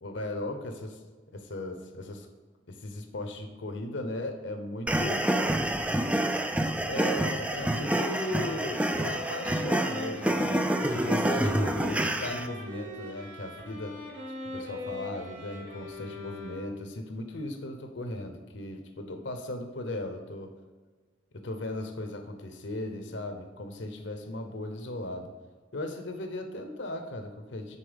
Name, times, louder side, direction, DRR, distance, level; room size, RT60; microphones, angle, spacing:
voice 1, 0.0-1.0 1.3-2.3 2.7-5.2 6.8-14.0 14.5-20.5 21.3-25.3 25.7-27.8, left 1 dB, 70° left, 6 dB, 1.0 m, -37 dB
sound 1, 4.9-12.5, right 1 dB, 5° right, 0.4 m, -27 dB
sound 2, 7.5-17.0, left 1 dB, 80° right, 2.6 m, -41 dB
9.9 x 4.3 x 5.2 m, 1.4 s
head